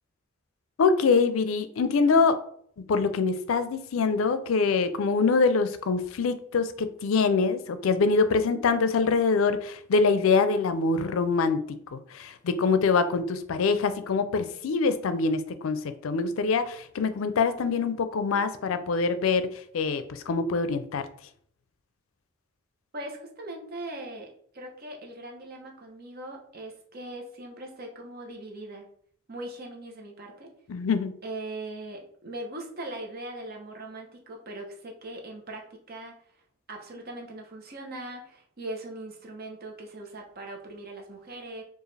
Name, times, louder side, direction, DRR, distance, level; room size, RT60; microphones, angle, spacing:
voice 1, 0.8-2.4 2.9-11.6 11.9-21.1 30.7-31.1, left 4 dB, 85° left, 11 dB, 0.4 m, -24 dB
voice 2, 22.9-28.9 29.3-30.5 31.2-36.1 36.7-41.6, right 1 dB, 50° right, 1 dB, 0.9 m, -40 dB
4.7 x 2.5 x 3.2 m, 0.62 s
head